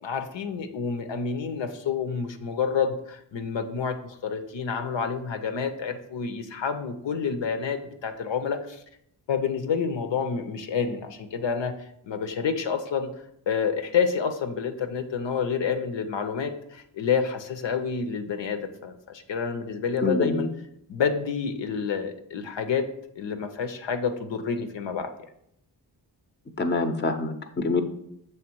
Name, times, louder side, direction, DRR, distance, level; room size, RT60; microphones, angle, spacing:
voice 1, 0.0-8.8 9.3-11.7 12.0-13.1 13.5-20.5 20.9-22.9 23.2-25.1, left 6 dB, 85° left, 7 dB, 0.7 m, -28 dB
voice 2, 20.0-20.5 26.6-27.8, left 3 dB, 25° left, 8 dB, 0.6 m, -25 dB
6.4 x 3.3 x 4.5 m, 0.75 s
cardioid pair, 65°, 43 cm